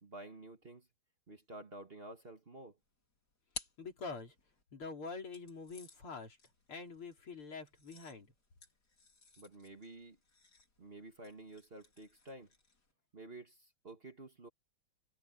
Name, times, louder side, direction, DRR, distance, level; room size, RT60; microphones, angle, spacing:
voice 1, 0.0-0.9 1.3-2.8 9.4-10.2 10.8-12.5 13.1-14.5, right 2 dB, 30° right, 1.8 m, -51 dB
sound 1, 2.8-4.6 5.3-12.9, left 3 dB, 50° left, 4.4 m, -55 dB
voice 2, 3.8-4.3 4.7-6.4 6.7-8.3, left 4 dB, 85° left, 4.6 m, -45 dB
omnidirectional pair, 2.3 m